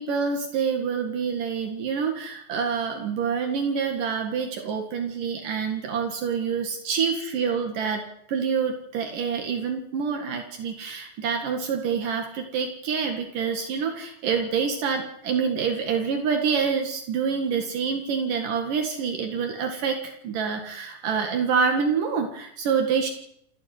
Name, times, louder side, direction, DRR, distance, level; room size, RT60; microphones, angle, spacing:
voice 1, 0.0-8.0 8.3-23.1, right 6 dB, 70° right, 3 dB, 3.5 m, -27 dB
28.0 x 10.5 x 9.4 m, 0.73 s
omnidirectional pair, 3.9 m